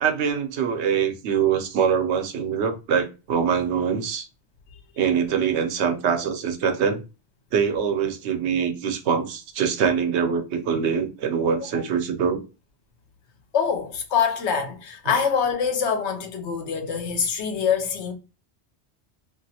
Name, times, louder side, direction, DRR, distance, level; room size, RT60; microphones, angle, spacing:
voice 1, 0.0-4.3 5.0-7.0 7.5-12.4, right 7 dB, 80° right, 0.9 m, -24 dB
voice 2, 13.5-18.1, left 7 dB, 80° left, 1.0 m, -24 dB
3.0 x 2.4 x 2.7 m
omnidirectional pair, 1.1 m